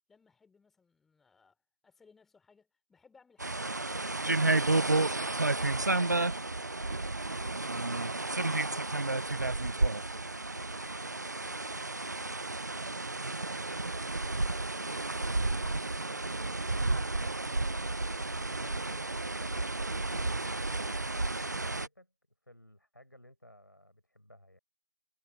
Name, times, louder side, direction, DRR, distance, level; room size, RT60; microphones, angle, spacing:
voice 1, 0.1-1.6 1.8-4.5 5.2-6.6 17.1-17.4, left 5 dB, ahead, 4.1 m, -65 dB
sound 1, 3.4-21.9, right 2 dB, 60° right, 1.0 m, -32 dB
voice 2, 7.6-8.4 18.3-22.1 22.4-24.6, left 1 dB, 85° left, 7.6 m, -56 dB
figure-of-eight pair, 160°, 10 cm